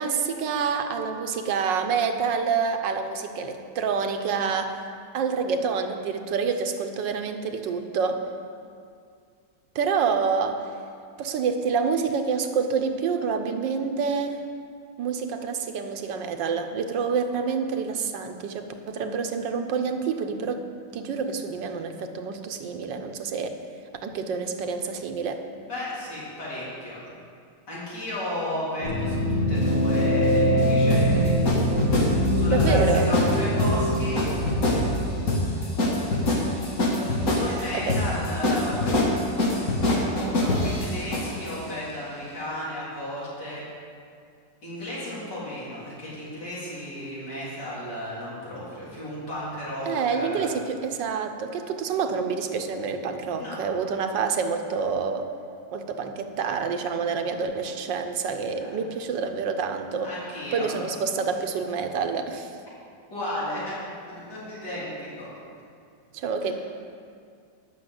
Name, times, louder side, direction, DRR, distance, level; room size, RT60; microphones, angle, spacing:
voice 1, 0.0-4.8 5.1-8.2 9.7-10.7 11.2-14.4 15.0-20.7 20.9-23.5 24.0-25.4 32.4-33.1 37.5-38.0 49.9-55.3 55.7-60.1 60.5-62.5 66.1-66.5, right 5 dB, 90° right, 6 dB, 1.5 m, -27 dB
voice 2, 25.7-27.1 27.7-31.6 32.3-34.2 37.2-39.5 40.2-43.6 44.6-50.5 53.3-53.6 58.7-58.8 60.0-60.8 63.1-63.8 64.1-65.3 66.5-66.6, left 1 dB, 70° left, -9 dB, 4.0 m, -34 dB
sound 1, 28.8-34.9, equal, 35° left, 1.5 m, -23 dB
sound 2, 29.5-41.6, left 1 dB, 55° left, 1.9 m, -25 dB
11.5 x 5.9 x 7.9 m, 2.3 s
omnidirectional pair, 1.9 m